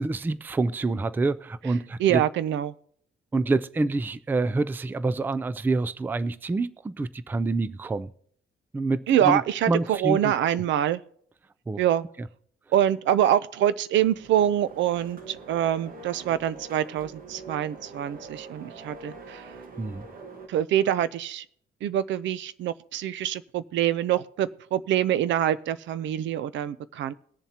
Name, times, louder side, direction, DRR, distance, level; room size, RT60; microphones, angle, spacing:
voice 1, 0.0-2.2 3.3-8.1 8.7-9.4 9.7-10.3 11.7-11.8 12.2-12.3 19.8-20.1, right 3 dB, 10° right, 0.3 m, -27 dB
voice 2, 2.0-2.7 9.1-11.0 11.8-12.0 12.7-19.4 20.5-21.4 21.8-27.1, right 11 dB, 75° right, 0.6 m, -25 dB
sound 1, 13.9-20.5, right 3 dB, 45° right, 1.4 m, -44 dB
21.5 x 7.3 x 2.9 m
cardioid pair, 155°, 19 cm